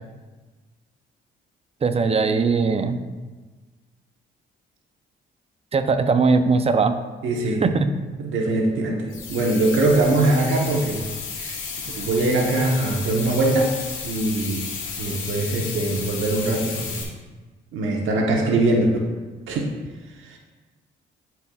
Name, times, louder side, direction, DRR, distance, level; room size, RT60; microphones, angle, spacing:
voice 1, 1.8-3.0 5.7-7.0 7.6-7.9, right 4 dB, 30° right, 9 dB, 0.5 m, -20 dB
voice 2, 7.2-7.6 8.2-11.0 11.4-11.6 12.0-13.7 14.0-14.6 15.0-17.0 17.7-18.9 19.5-19.7 20.2-20.4, right 2 dB, 80° right, 0 dB, 1.0 m, -22 dB
sound 1, 9.1-17.0, left 5 dB, 85° left, 1.6 m, -33 dB
11.5 x 4.5 x 2.3 m, 1.3 s
cardioid pair, 90°, 20 cm